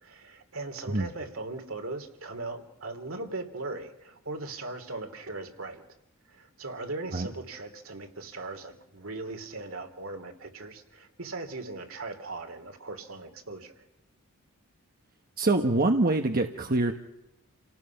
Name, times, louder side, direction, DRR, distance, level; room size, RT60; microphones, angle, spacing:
voice 1, 0.0-5.8 6.3-13.8, right 2 dB, 70° right, 5 dB, 3.0 m, -39 dB
voice 2, 15.4-16.9, right 2 dB, 45° right, 5 dB, 1.2 m, -24 dB
29.0 x 18.5 x 5.9 m, 0.92 s
head